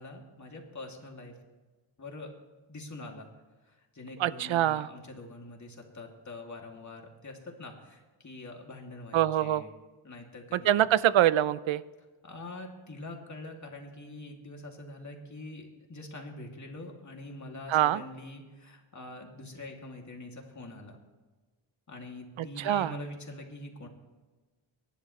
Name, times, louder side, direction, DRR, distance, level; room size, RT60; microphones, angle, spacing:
voice 1, 0.0-1.4 2.0-2.3 2.7-3.3 3.6-9.7 10.0-10.7 12.2-21.0 21.9-23.9, left 2 dB, 35° left, 1 dB, 2.7 m, -44 dB
voice 2, 4.2-4.9 9.1-9.6 10.5-11.8 17.7-18.0 22.6-22.9, right 12 dB, 75° right, 17 dB, 0.6 m, -24 dB
23.5 x 11.5 x 3.2 m, 1.3 s
cardioid pair, 95°, 47 cm